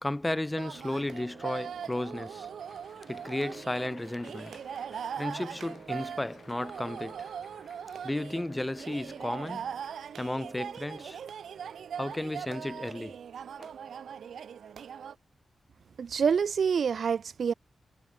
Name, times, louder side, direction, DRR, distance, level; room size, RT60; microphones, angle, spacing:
voice 1, 0.0-7.7 8.0-9.7 10.2-11.2 12.0-13.2 13.6-13.7, left 1 dB, 15° left, 1.2 m, -34 dB
sound 1, 0.6-15.1, right 8 dB, 90° right, 0.9 m, -41 dB
Crowd, 2.5-10.9, left 5 dB, 50° left, 5.6 m, -58 dB
voice 2, 16.0-17.5, right 6 dB, 70° right, 0.5 m, -26 dB
wide cardioid pair, 105°, 0 cm